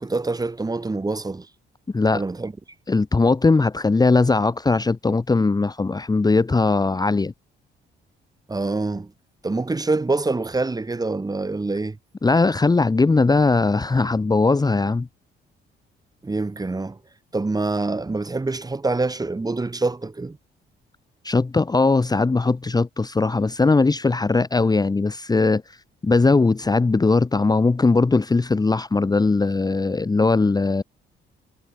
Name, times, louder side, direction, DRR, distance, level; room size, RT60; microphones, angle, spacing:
voice 1, 0.0-1.5 2.1-2.5 8.5-9.1 9.4-12.0 16.2-17.0 17.3-20.4, right 3 dB, 20° right, 2.1 m, -25 dB
voice 2, 2.9-7.3 12.2-15.1 21.2-25.6 26.0-30.8, left 3 dB, 20° left, 1.1 m, -19 dB
cardioid pair, 90°, 20 cm